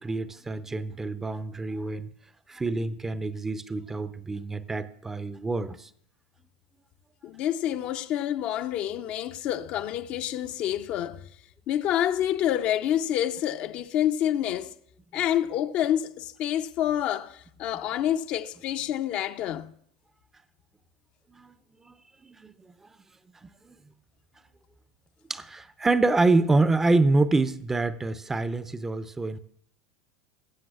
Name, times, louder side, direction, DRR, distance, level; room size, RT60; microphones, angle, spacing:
voice 1, 0.0-2.1 2.5-5.9 21.3-21.5 21.8-21.9 22.2-22.5 23.4-23.8 25.3-29.4, right 3 dB, 15° right, 0.5 m, -26 dB
voice 2, 7.2-11.3 11.7-14.7 15.1-19.7, left 11 dB, 50° left, 0.5 m, -28 dB
21.0 x 7.4 x 2.4 m
hypercardioid pair, 85°, 3 cm